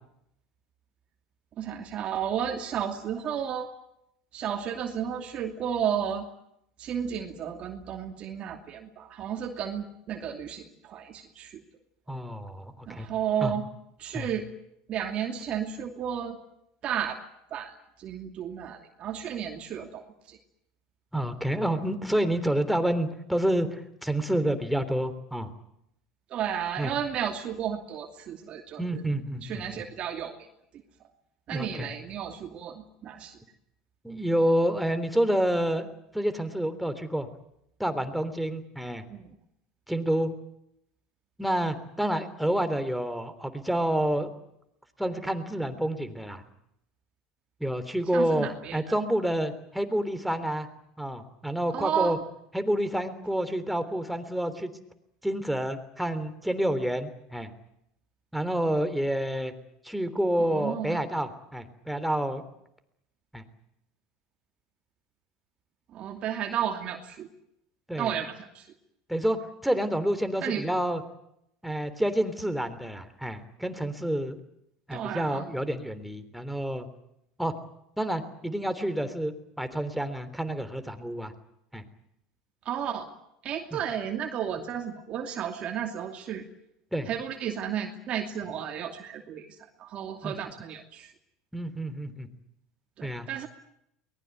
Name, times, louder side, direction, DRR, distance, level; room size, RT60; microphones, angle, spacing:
voice 1, 1.6-3.7 4.3-6.3 6.8-11.6 12.9-13.6 14.0-14.4 14.9-16.4 16.8-17.2 17.5-20.4 26.3-29.0 29.4-30.3 31.5-33.4 39.1-39.3 48.1-48.8 51.7-52.2 60.4-61.0 65.9-67.3 68.0-68.7 70.4-70.6 74.9-75.5 82.6-83.1 83.4-86.4 87.1-89.5 89.8-91.1 93.0-93.5, right 9 dB, 45° right, 3 dB, 2.7 m, -33 dB
voice 2, 12.1-13.1 13.4-13.5 14.1-14.3 21.1-25.5 26.8-26.9 28.8-29.6 31.5-31.9 34.0-35.9 36.1-37.3 37.8-39.0 39.9-40.3 41.4-44.3 45.0-46.4 47.6-50.7 51.0-52.2 52.5-54.7 55.2-57.5 58.3-59.5 59.8-62.4 63.3-63.4 67.9-68.1 69.1-71.0 71.6-74.4 74.9-76.9 77.4-77.5 78.0-81.3 81.7-81.8 83.7-83.8 86.9-87.1 90.2-90.3 91.5-92.3 93.0-93.3, right 1 dB, ahead, 9 dB, 3.4 m, -28 dB
23.0 x 20.0 x 9.4 m, 0.77 s
supercardioid pair, 95°, 3 cm